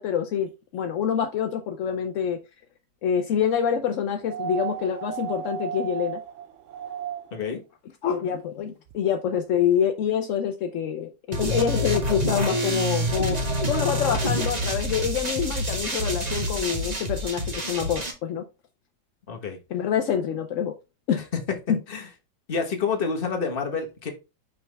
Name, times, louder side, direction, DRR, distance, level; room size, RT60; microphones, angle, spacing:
voice 1, 0.0-2.4 3.0-6.2 8.0-13.4 13.6-18.4 19.7-20.7 21.1-21.3 21.7-21.8, left 8 dB, 70° left, 0.7 m, -26 dB
sound 1, 4.2-7.5 8.9-9.0, right 9 dB, 90° right, 0.6 m, -34 dB
sound 2, 11.3-18.1, equal, 25° right, 1.3 m, -27 dB
voice 2, 19.3-19.6 21.9-22.1 22.5-24.1, left 5 dB, 35° left, 1.2 m, -28 dB
5.6 x 5.3 x 3.3 m
omnidirectional pair, 2.0 m